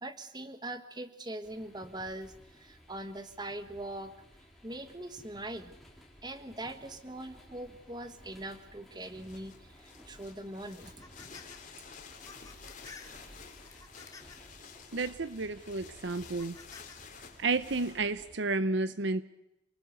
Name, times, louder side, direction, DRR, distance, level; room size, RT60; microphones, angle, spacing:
voice 1, 0.0-4.1 4.6-5.7 6.2-9.5 9.8-10.9, right 1 dB, 20° right, 10 dB, 1.6 m, -42 dB
sound 1, 1.4-18.4, equal, ahead, 4.2 m, -56 dB
sound 2, 9.1-18.0, left 6 dB, 40° left, 3.6 m, -52 dB
sound 3, 10.7-11.6 11.9-14.5 15.1-15.3 16.1-17.0, left 4 dB, 20° left, 2.3 m, -53 dB
voice 2, 14.9-16.6 17.4-19.2, right 3 dB, 60° right, 14 dB, 0.8 m, -31 dB
28.0 x 20.0 x 6.6 m, 0.90 s
head